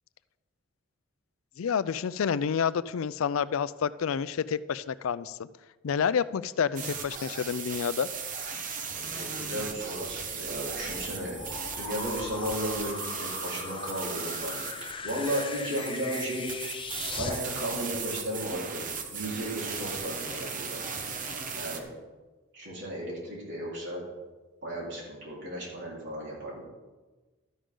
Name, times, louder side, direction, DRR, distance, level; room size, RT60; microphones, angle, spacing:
voice 1, 1.6-5.5 5.8-8.1, left 7 dB, 80° left, 16 dB, 0.4 m, -29 dB
sound 1, 6.8-21.8, right 5 dB, 40° right, 1.0 m, -37 dB
voice 2, 8.9-11.4 11.8-14.7 15.0-16.5 17.1-20.8 21.5-21.9 22.5-24.0 24.6-26.7, equal, 60° right, -5 dB, 4.1 m, -35 dB
sound 2, 10.0-17.4, left 4 dB, 25° left, 0.7 m, -40 dB
12.5 x 10.0 x 3.8 m, 1.2 s
head